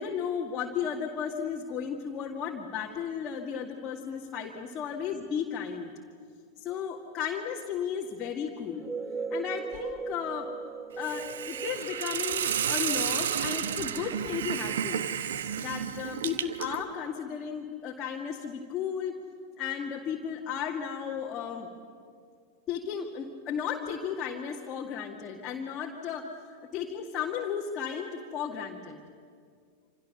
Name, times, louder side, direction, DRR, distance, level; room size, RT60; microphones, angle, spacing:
voice 1, 0.0-5.9 6.6-8.8 9.3-10.5 11.0-15.0 15.6-19.2 19.6-21.7 22.7-29.0, left 7 dB, 30° left, 0 dB, 2.2 m, -34 dB
sound 1, 8.7-13.3, right 4 dB, 5° right, 0.8 m, -38 dB
Hiss, 11.0-16.8, right 8 dB, 60° right, 1.2 m, -31 dB
27.5 x 27.0 x 6.9 m, 2.2 s
figure-of-eight pair, 90°, 0 cm